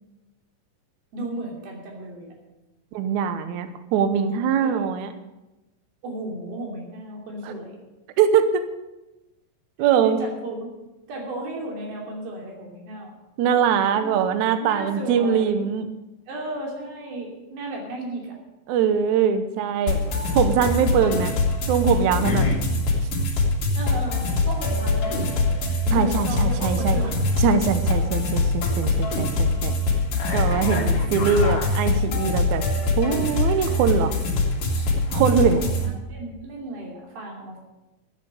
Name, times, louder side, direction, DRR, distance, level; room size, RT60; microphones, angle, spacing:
voice 1, 1.1-2.3 4.6-5.0 6.0-7.8 10.0-10.7 11.1-13.1 13.9-14.1 14.6-15.7 16.3-18.4 23.7-27.2 30.8-31.1 35.4-37.6, right 2 dB, 90° right, 0 dB, 4.8 m, -34 dB
voice 2, 2.9-5.1 8.2-8.6 9.8-10.2 13.4-15.9 18.7-20.0 20.4-21.3 21.7-22.6 25.9-27.0 27.4-29.7 30.3-32.6 33.0-34.1 35.1-35.6, right 7 dB, 70° right, 10 dB, 2.0 m, -22 dB
sound 1, 19.9-35.9, left 2 dB, 65° left, 3.7 m, -23 dB
13.0 x 8.6 x 8.2 m, 1.0 s
omnidirectional pair, 4.2 m